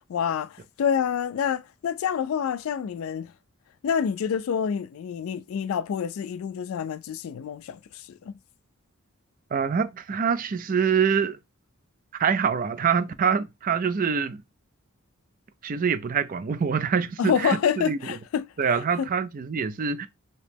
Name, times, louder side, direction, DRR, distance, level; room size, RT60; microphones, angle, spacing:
voice 1, 0.1-3.3 3.8-8.3 17.2-19.1, left 7 dB, 70° left, 0.3 m, -27 dB
voice 2, 9.5-11.4 12.1-14.4 15.6-18.0 18.6-20.1, right 6 dB, 40° right, 0.4 m, -25 dB
3.0 x 2.8 x 3.4 m
head